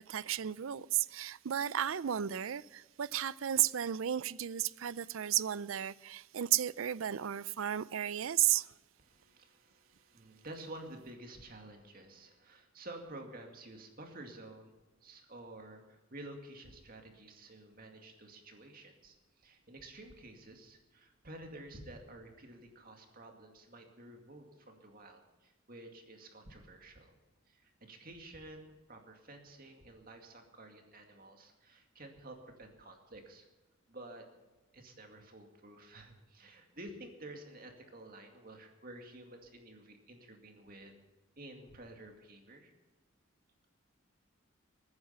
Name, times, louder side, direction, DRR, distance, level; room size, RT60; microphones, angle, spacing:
voice 1, 0.0-8.7, right 11 dB, 75° right, 0.5 m, -33 dB
voice 2, 9.0-27.1 27.5-33.5 33.9-34.3 34.7-40.9 41.4-42.7, right 1 dB, 45° right, 2.3 m, -51 dB
21.5 x 9.7 x 5.8 m
head